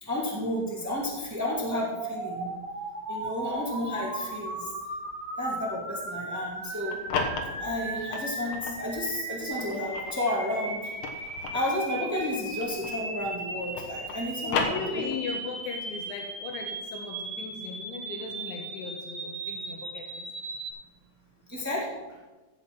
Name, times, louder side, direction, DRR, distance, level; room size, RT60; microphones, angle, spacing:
voice 1, 0.0-2.5 3.1-4.7 5.4-7.0 7.5-10.9 11.5-15.0 21.5-21.9, left 1 dB, 20° right, -4 dB, 0.4 m, -32 dB
sound 1, 1.7-20.7, right 2 dB, 60° right, 4.3 m, -37 dB
sound 2, 6.7-8.8 9.4-13.1 13.4-15.4, left 4 dB, 65° left, 2.0 m, -34 dB
voice 2, 14.4-20.3, left 5 dB, 85° left, 3 dB, 3.3 m, -38 dB
15.5 x 5.7 x 6.1 m, 1.2 s
omnidirectional pair, 5.3 m